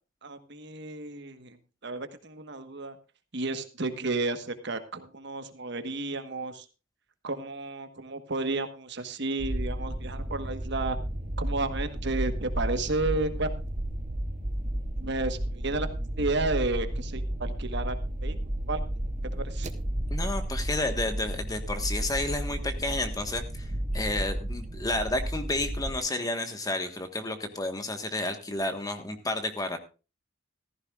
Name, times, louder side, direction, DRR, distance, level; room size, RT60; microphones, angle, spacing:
voice 1, 0.2-1.6 1.8-2.9 3.3-6.6 7.2-11.0 11.4-13.5 15.0-15.9 16.2-17.9 18.2-18.3 18.7-18.8 19.4-19.7, right 2 dB, 60° right, 9 dB, 1.3 m, -32 dB
sound 1, 9.4-26.0, right 1 dB, 35° right, 0.9 m, -32 dB
voice 2, 20.1-29.8, left 2 dB, 20° left, 7 dB, 1.4 m, -31 dB
15.0 x 14.5 x 2.4 m, 0.31 s
head